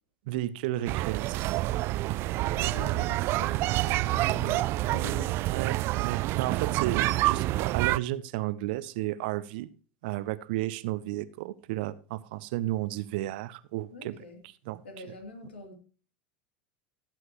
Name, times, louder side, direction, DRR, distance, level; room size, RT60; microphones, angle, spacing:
voice 1, 0.3-1.4 5.4-9.7 10.0-14.2 14.7-14.8, right 15 dB, 60° right, 0.8 m, -33 dB
sound 1, 0.9-8.0, right 17 dB, 45° right, 0.4 m, -27 dB
voice 2, 2.5-5.7 13.9-14.4 14.8-15.7, left 3 dB, 80° left, 3.2 m, -44 dB
16.0 x 7.9 x 3.1 m
hypercardioid pair, 85°, 6 cm